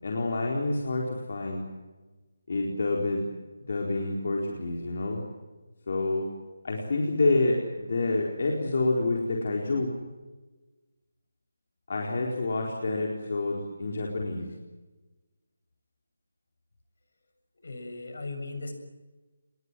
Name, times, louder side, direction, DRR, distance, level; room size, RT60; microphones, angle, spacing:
voice 1, 0.0-1.6 2.5-3.3 3.7-5.2 5.9-6.3 6.6-9.9 11.9-14.5, left 2 dB, 45° left, 0 dB, 4.3 m, -28 dB
voice 2, 17.6-18.7, left 3 dB, 60° left, 7 dB, 7.0 m, -37 dB
28.0 x 22.0 x 7.7 m, 1.2 s
hypercardioid pair, 180°, 0 cm